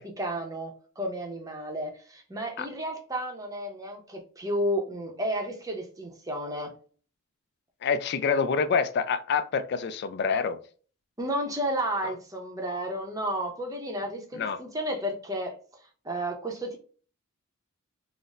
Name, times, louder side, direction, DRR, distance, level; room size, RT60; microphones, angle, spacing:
voice 1, 0.0-6.7 11.2-15.6 16.0-16.8, equal, 15° right, 0.6 m, -32 dB
voice 2, 7.8-10.6 14.3-14.6, left 5 dB, 50° left, 0.3 m, -26 dB
3.9 x 2.0 x 2.4 m
head